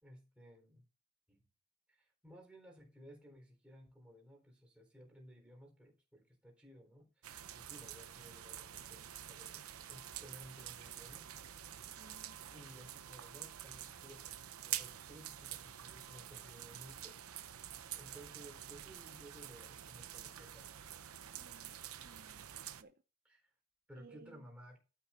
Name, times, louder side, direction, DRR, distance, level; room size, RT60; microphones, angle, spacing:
voice 1, 0.0-0.9 1.3-1.5 1.9-9.6 9.9-11.3 12.5-14.3 14.7-17.2 18.0-20.7 23.2-23.5 23.9-24.8, equal, 5° right, 0 dB, 4.1 m, -57 dB
sound 1, 7.2-22.8, right 11 dB, 90° right, 0.7 m, -48 dB
voice 2, 12.0-12.4 21.3-22.5 22.8-22.9 24.0-24.5, right 3 dB, 45° right, 8 dB, 0.6 m, -60 dB
12.5 x 5.9 x 4.4 m, 0.32 s
head